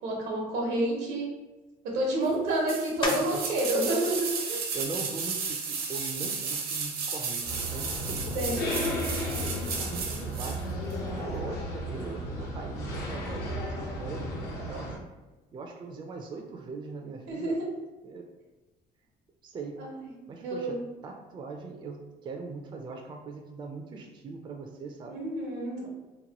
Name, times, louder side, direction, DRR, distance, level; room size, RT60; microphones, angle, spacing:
voice 1, 0.0-1.3 1.8-4.6 8.3-8.6 17.3-17.7 19.8-20.1 20.4-20.8 25.1-25.9, right 1 dB, 90° right, -1 dB, 0.9 m, -29 dB
sound 1, 2.7-10.6 10.9-11.0, right 5 dB, 65° right, 0.6 m, -34 dB
sound 2, 3.0-3.6 4.2-8.6 9.1-14.3 14.6-20.2, left 2 dB, 30° left, 0.5 m, -44 dB
voice 2, 3.1-3.5 4.7-9.1 9.8-15.1 15.5-17.5 18.0-18.2 19.4-19.8 20.3-25.2, right 4 dB, 30° right, 2 dB, 0.4 m, -41 dB
sound 3, 7.4-15.0, equal, 75° left, 0.7 m, -34 dB
3.0 x 2.1 x 2.8 m, 1.2 s
cardioid pair, 110°, 17 cm